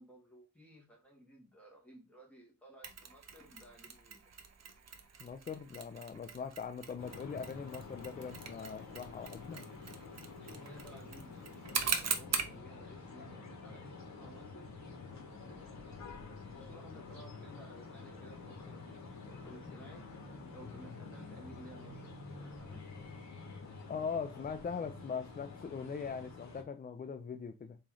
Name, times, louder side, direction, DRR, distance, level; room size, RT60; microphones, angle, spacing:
voice 1, 0.0-4.3 10.4-14.7 15.2-16.1 16.5-20.1 20.5-22.8, equal, 5° left, 1.9 m, -56 dB
Mechanisms, 2.8-12.6, right 6 dB, 50° right, 0.7 m, -41 dB
voice 2, 5.2-9.6 23.9-27.8, left 6 dB, 30° left, 0.4 m, -41 dB
sound 1, 7.0-26.6, left 4 dB, 55° left, 1.5 m, -49 dB
4.2 x 3.1 x 3.7 m
wide cardioid pair, 145°, 33 cm